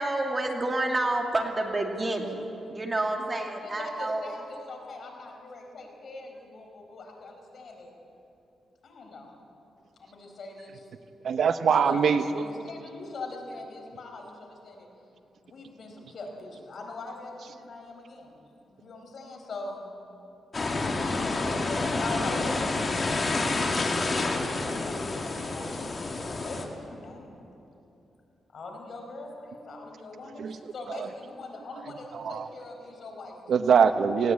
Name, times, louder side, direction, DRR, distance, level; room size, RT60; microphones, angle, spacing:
voice 1, 0.0-4.3, right 2 dB, 25° right, 2 dB, 2.4 m, -29 dB
voice 2, 3.6-7.9 8.8-9.3 10.0-10.9 11.7-14.9 15.4-18.3 18.6-19.9 21.2-27.3 28.5-33.4 33.8-33.9, left 2 dB, 55° left, 2 dB, 4.5 m, -42 dB
voice 3, 11.2-12.2 30.4-30.6 31.0-31.1 32.1-32.5 33.5-34.3, right 6 dB, 70° right, 10 dB, 0.8 m, -22 dB
sound 1, 20.5-26.6, left 3 dB, 35° left, 2.2 m, -28 dB
19.0 x 17.5 x 8.4 m, 2.9 s
cardioid pair, 100°, 0 cm